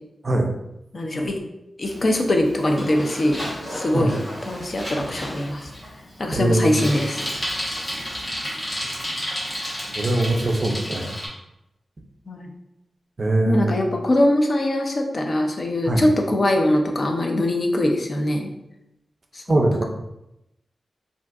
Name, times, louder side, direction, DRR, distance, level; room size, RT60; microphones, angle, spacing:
voice 1, 0.9-1.4 1.8-3.4 3.7-5.7 6.2-7.2 12.3-12.5 13.5-18.5 19.3-19.8, left 1 dB, 40° left, 2 dB, 0.4 m, -22 dB
Bicycle, 1.8-11.3, equal, 20° left, 0.9 m, -32 dB
voice 2, 6.3-6.8 10.0-11.1 13.2-13.7 15.9-16.0 19.5-19.8, right 2 dB, 35° right, 2 dB, 0.4 m, -21 dB
3.6 x 2.5 x 2.3 m, 0.88 s
wide cardioid pair, 160°, 0 cm